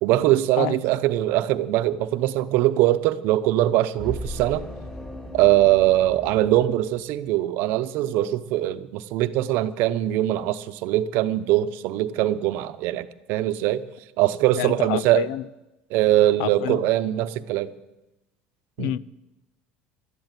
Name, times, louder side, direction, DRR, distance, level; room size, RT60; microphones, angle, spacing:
voice 1, 0.0-4.6 5.3-13.8 14.2-15.2 15.9-17.7 18.8-18.9, right 14 dB, 70° right, 0.8 m, -22 dB
sound 1, 4.0-7.4, left 1 dB, 15° left, 2.4 m, -37 dB
voice 2, 14.6-15.4 16.4-16.8 18.8-19.0, left 13 dB, 90° left, 0.5 m, -28 dB
12.5 x 10.5 x 9.1 m
cardioid pair, 130°, 4 cm